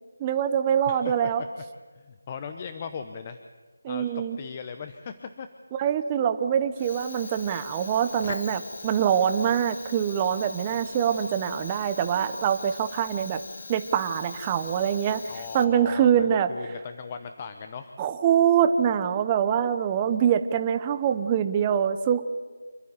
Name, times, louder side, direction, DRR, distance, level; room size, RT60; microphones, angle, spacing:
voice 1, 0.2-1.4 3.8-4.4 5.8-13.4 13.7-15.2 15.5-16.5 18.0-22.4, right 8 dB, 15° right, 9 dB, 0.9 m, -24 dB
voice 2, 0.9-1.5 1.9-3.4 3.9-5.5 15.3-17.9, left 6 dB, 25° left, 8 dB, 0.9 m, -38 dB
Fire, 6.7-16.1, left 4 dB, 45° left, 1.5 m, -41 dB
27.0 x 11.5 x 9.7 m, 1.4 s
figure-of-eight pair, 170°, 0 cm